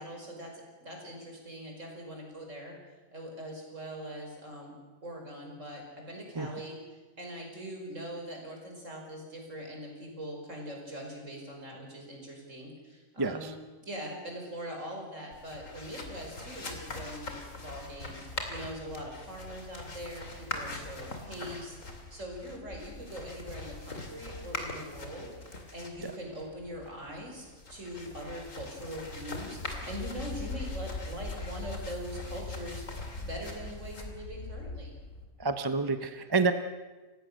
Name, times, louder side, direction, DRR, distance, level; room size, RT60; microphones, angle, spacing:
voice 1, 0.0-2.8 3.1-4.8 5.0-13.5 13.8-17.3 17.6-32.8 33.3-34.9, equal, 65° right, 1 dB, 5.5 m, -42 dB
voice 2, 13.2-13.5 26.0-26.1 35.4-36.5, right 4 dB, 20° right, 8 dB, 0.9 m, -28 dB
sound 1, 15.3-35.2, left 2 dB, 70° left, 3.1 m, -41 dB
29.5 x 16.5 x 6.5 m, 1.2 s
omnidirectional pair, 1.4 m